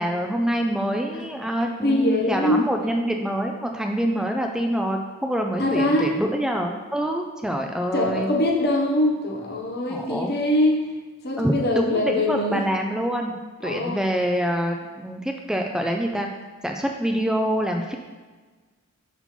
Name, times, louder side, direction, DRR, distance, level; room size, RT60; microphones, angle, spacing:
voice 1, 0.0-8.3 9.9-10.4 11.4-13.4 13.6-16.3 16.6-17.9, equal, 5° right, 2 dB, 0.4 m, -26 dB
voice 2, 1.8-2.7 5.6-6.2 7.9-10.9 11.2-12.6 13.6-14.0, left 1 dB, 45° left, -1 dB, 1.1 m, -23 dB
5.8 x 5.5 x 4.4 m, 1.3 s
head